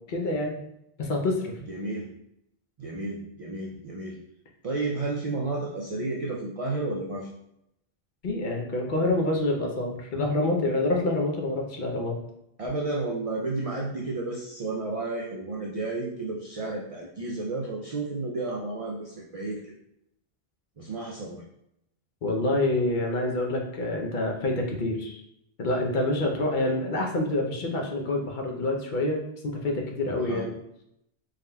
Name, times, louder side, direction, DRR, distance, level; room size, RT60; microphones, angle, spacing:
voice 1, 0.1-0.6 1.0-1.5 8.2-12.2 22.2-25.2 25.6-29.2 29.4-30.5, left 2 dB, 50° left, 0 dB, 0.8 m, -27 dB
voice 2, 1.7-2.1 2.8-4.2 4.6-7.3 12.6-19.7 20.8-21.4 30.2-30.5, right 2 dB, 55° right, -2 dB, 0.4 m, -32 dB
4.1 x 3.5 x 2.2 m, 0.80 s
omnidirectional pair, 1.1 m